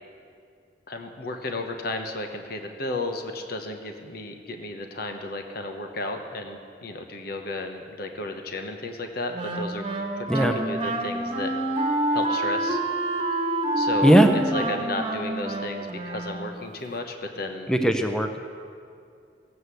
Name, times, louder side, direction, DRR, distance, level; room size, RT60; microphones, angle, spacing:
voice 1, 0.9-9.8 10.1-12.8 13.8-17.7, left 2 dB, 60° left, 4 dB, 1.0 m, -33 dB
Wind instrument woodwind instrument, 9.3-16.7, right 1 dB, 30° right, 1.4 m, -27 dB
voice 2, 17.7-18.4, right 1 dB, 5° left, 5 dB, 0.6 m, -18 dB
16.0 x 7.9 x 8.3 m, 2.3 s
head